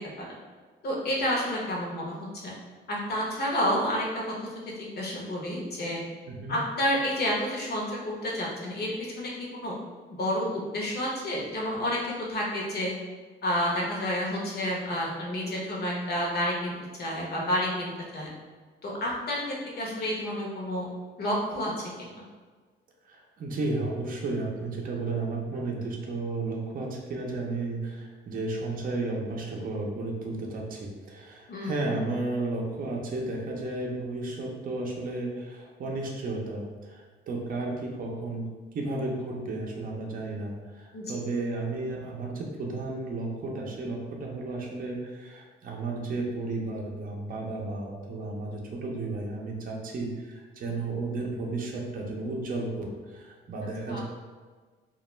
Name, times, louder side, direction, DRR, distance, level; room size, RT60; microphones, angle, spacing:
voice 1, 0.8-2.4 2.9-4.3 5.0-6.0 6.5-9.7 10.1-12.0 12.3-12.9 13.4-18.3 18.8-19.4 19.8-20.8 21.2-22.1 31.5-31.8 40.9-41.2 53.9-54.0, equal, 55° left, -3 dB, 0.8 m, -30 dB
voice 2, 6.3-6.6 23.1-38.5 38.7-54.0, right 2 dB, 45° right, -1 dB, 0.5 m, -33 dB
2.3 x 2.1 x 3.0 m, 1.4 s
cardioid pair, 90°, 20 cm